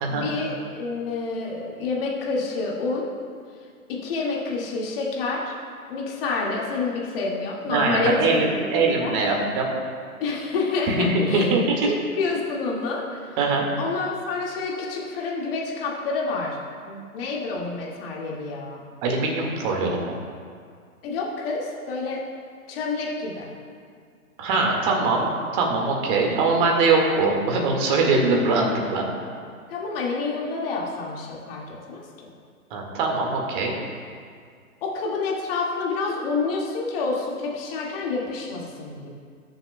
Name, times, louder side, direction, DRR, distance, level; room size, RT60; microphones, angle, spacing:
voice 1, 0.1-3.1 3.9-5.5 5.9-9.4 10.2-11.5 12.2-13.4 13.8-16.6 16.9-18.8 21.0-22.2 22.7-23.5 29.7-32.0 34.8-39.1, left 3 dB, 40° left, -3 dB, 2.0 m, -28 dB
voice 2, 7.7-9.7 10.9-11.9 13.4-13.6 19.0-20.1 24.4-29.1 32.7-33.7, right 3 dB, 35° right, 0 dB, 1.8 m, -22 dB
20.0 x 6.8 x 2.2 m, 2.1 s
figure-of-eight pair, 130°, 45 cm